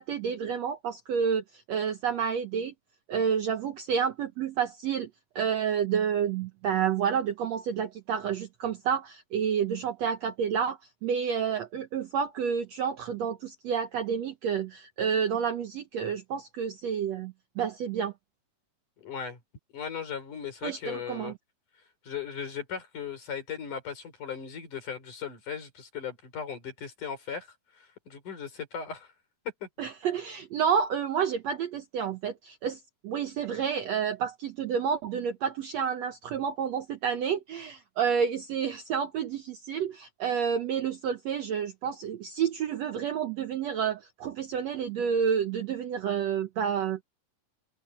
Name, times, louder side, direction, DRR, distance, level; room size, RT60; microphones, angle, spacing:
voice 1, 0.0-2.7 3.1-5.1 5.4-18.1 20.6-21.3 29.8-47.0, right 7 dB, 70° right, 1.7 m, -29 dB
voice 2, 19.0-19.4 19.7-21.3 22.0-29.1 29.6-29.7, left 7 dB, 60° left, 6.2 m, -37 dB
open air
omnidirectional pair, 4.1 m